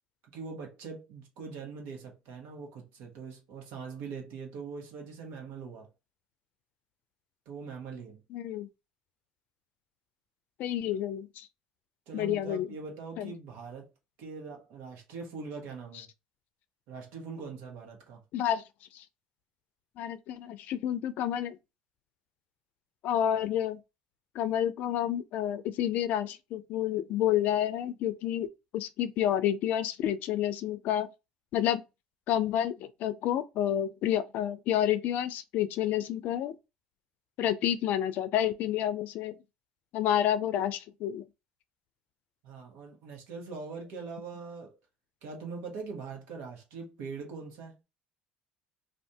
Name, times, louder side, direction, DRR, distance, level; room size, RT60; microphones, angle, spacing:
voice 1, 0.3-5.9 7.4-8.2 12.1-13.9 14.2-16.1 16.9-18.2 42.4-44.8 45.2-47.8, right 5 dB, 70° right, 1.2 m, -42 dB
voice 2, 8.3-8.7 10.6-11.5 12.1-12.7 13.2-13.3 18.3-18.6 18.9-19.0 20.0-21.6 23.0-23.8 24.3-28.5 28.7-31.1 31.5-31.8 32.3-36.5 37.4-39.4 39.9-41.2, left 11 dB, 65° left, 0.4 m, -29 dB
2.6 x 2.5 x 3.4 m
supercardioid pair, 75°, 3 cm